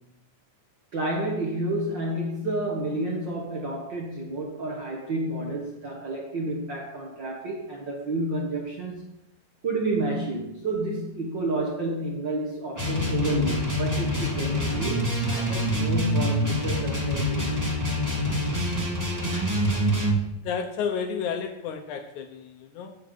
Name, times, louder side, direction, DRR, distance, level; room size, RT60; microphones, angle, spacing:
voice 1, 0.9-9.2 9.6-17.7, right 2 dB, 65° right, -1 dB, 1.1 m, -30 dB
sound 1, 12.7-20.2, equal, 5° right, 1.5 m, -26 dB
voice 2, 20.3-23.0, left 6 dB, 80° left, 6 dB, 1.7 m, -31 dB
9.8 x 9.2 x 5.3 m, 0.82 s
omnidirectional pair, 4.6 m